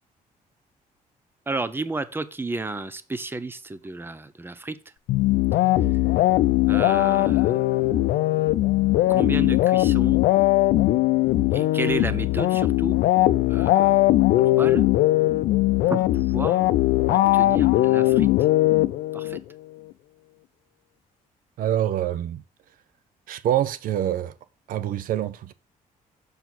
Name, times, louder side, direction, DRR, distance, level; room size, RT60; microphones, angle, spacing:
voice 1, 1.5-4.8 6.7-7.7 9.1-10.2 11.5-13.0 13.5-14.0 14.4-14.8 15.9-16.7 17.1-18.3 19.1-19.4, right 3 dB, 15° right, 0.7 m, -32 dB
sound 1, 5.1-19.4, left 16 dB, 90° left, 0.5 m, -20 dB
voice 2, 21.6-22.4 23.3-24.3 24.7-25.5, right 11 dB, 75° right, 0.5 m, -25 dB
6.9 x 4.5 x 6.0 m
cardioid pair, 100°, 15 cm